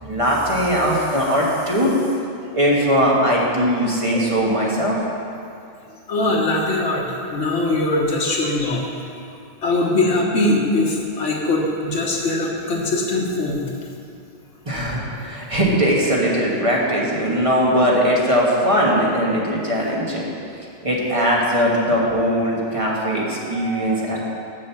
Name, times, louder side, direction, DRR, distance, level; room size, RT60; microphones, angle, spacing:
voice 1, 0.0-1.9 2.5-5.0 14.7-20.2 20.8-24.2, equal, 30° right, -4 dB, 1.4 m, -20 dB
voice 2, 6.1-7.0 7.3-8.8 9.6-13.6, left 2 dB, 85° left, 0 dB, 1.5 m, -21 dB
7.3 x 6.4 x 7.1 m, 2.5 s
omnidirectional pair, 1.2 m